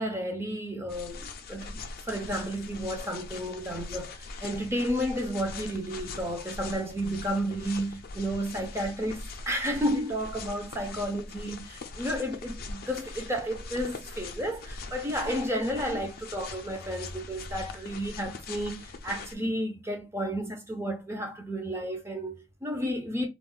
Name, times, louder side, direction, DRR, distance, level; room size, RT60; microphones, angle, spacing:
voice 1, 0.0-1.8 2.0-23.3, equal, 15° right, 0.5 m, -32 dB
sound 1, 0.9-19.3, left 3 dB, 50° left, 0.4 m, -42 dB
2.4 x 2.1 x 3.6 m
head